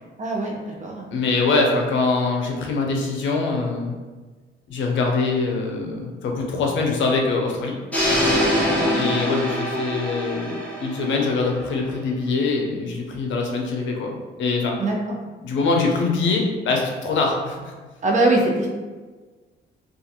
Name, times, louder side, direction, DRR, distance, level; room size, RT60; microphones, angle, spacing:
voice 1, 0.2-0.5 0.8-1.0 8.6-9.0 14.8-14.9 18.0-18.7, right 2 dB, 40° right, -2 dB, 0.6 m, -22 dB
voice 2, 1.1-4.0 4.7-7.8 8.9-14.8 15.4-17.7, left 3 dB, 70° left, 0 dB, 0.5 m, -23 dB
sound 1, 7.9-11.9, left 1 dB, 5° left, 0.9 m, -24 dB
2.5 x 2.3 x 2.7 m, 1.3 s
cardioid pair, 90°, 20 cm